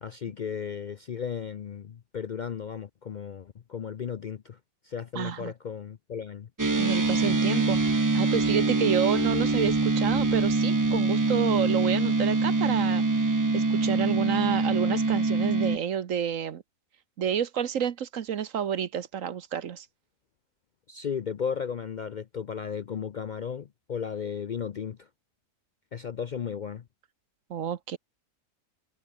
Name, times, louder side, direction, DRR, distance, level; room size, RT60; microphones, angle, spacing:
voice 1, 0.0-4.6 4.8-6.5 20.9-25.1 25.9-26.8, left 7 dB, 75° left, 0.4 m, -35 dB
voice 2, 5.1-5.5 6.8-16.6 17.2-19.9 27.5-28.0, right 8 dB, 60° right, 1.3 m, -29 dB
sound 1, 6.6-15.8, right 3 dB, 20° right, 0.5 m, -24 dB
omnidirectional pair, 1.6 m